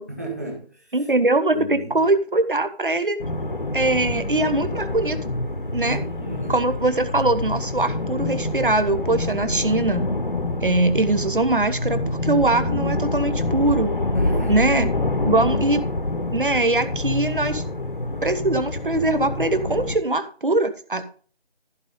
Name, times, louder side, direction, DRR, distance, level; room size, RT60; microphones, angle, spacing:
voice 1, 0.1-1.1 1.5-2.0 5.8-6.6 14.1-14.7, right 2 dB, 15° right, -2 dB, 1.7 m, -33 dB
voice 2, 0.9-3.2 3.7-5.2 5.7-6.0 6.5-10.1 10.6-13.9 14.5-14.9 15.2-15.8 16.3-17.6 18.2-21.1, right 2 dB, 50° right, 10 dB, 1.3 m, -22 dB
sound 1, 3.2-20.0, left 2 dB, 50° left, 1.1 m, -26 dB
14.5 x 5.2 x 5.5 m, 0.43 s
figure-of-eight pair, 180°, 33 cm